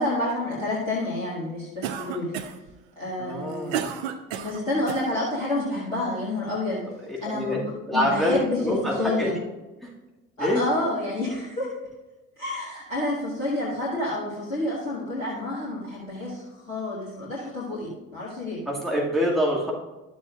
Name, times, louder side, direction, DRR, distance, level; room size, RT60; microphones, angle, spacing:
voice 1, 0.0-2.4 3.0-3.7 4.4-6.8 7.2-7.6 7.9-9.3 10.4-11.7 12.4-18.6, left 1 dB, 85° left, -9 dB, 2.0 m, -29 dB
Cough, 1.8-2.7 3.3-5.1, right 9 dB, 65° right, 0.7 m, -32 dB
voice 2, 3.2-3.9 7.2-7.6 7.9-8.4 8.6-9.3 9.8-9.9 10.4-10.6 18.7-19.7, equal, ahead, -4 dB, 2.1 m, -25 dB
12.5 x 7.3 x 2.5 m, 1.1 s
figure-of-eight pair, 55°, 38 cm